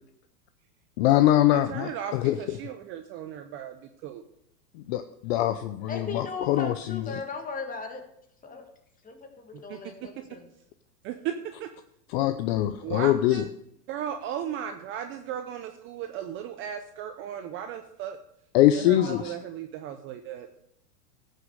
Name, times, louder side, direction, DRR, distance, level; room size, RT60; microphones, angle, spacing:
voice 1, 1.0-2.4 4.9-7.1 12.1-13.5 18.5-19.3, left 13 dB, 40° left, 11 dB, 0.6 m, -23 dB
voice 2, 1.5-4.2 9.7-9.8 11.0-11.3 11.6-11.7 12.8-13.5 13.9-18.2 18.7-20.5, right 9 dB, 25° right, 8 dB, 0.5 m, -36 dB
voice 3, 5.9-8.0 8.4-8.6 9.0-10.5 19.0-19.3, left 4 dB, 15° left, 4 dB, 1.7 m, -37 dB
12.5 x 6.5 x 6.4 m, 0.74 s
hypercardioid pair, 125°, 49 cm